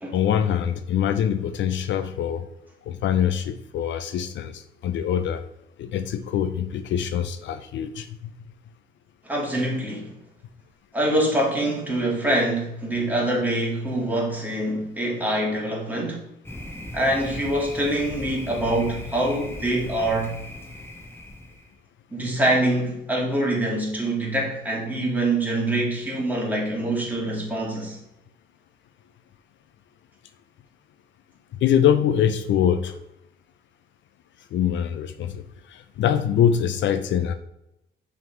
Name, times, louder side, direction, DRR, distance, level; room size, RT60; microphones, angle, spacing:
voice 1, 0.1-2.4 2.9-5.4 5.8-8.1 31.6-32.9 34.5-37.3, left 9 dB, 70° left, 10 dB, 0.5 m, -24 dB
voice 2, 9.2-10.1 10.9-16.2 16.9-20.3 22.1-28.0, right 1 dB, 10° right, -3 dB, 2.1 m, -25 dB
Thunder, 16.4-21.7, left 1 dB, 10° left, 1.1 m, -38 dB
6.1 x 3.7 x 4.4 m, 0.85 s
cardioid pair, 90°, 20 cm